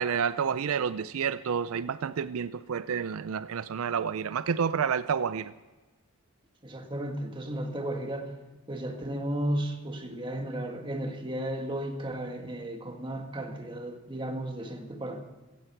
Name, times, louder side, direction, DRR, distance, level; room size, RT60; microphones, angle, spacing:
voice 1, 0.0-5.5, right 7 dB, 80° right, 15 dB, 0.4 m, -29 dB
voice 2, 6.6-8.3 8.7-15.2, right 1 dB, 25° right, 4 dB, 1.6 m, -34 dB
15.5 x 15.0 x 4.5 m, 1.2 s
head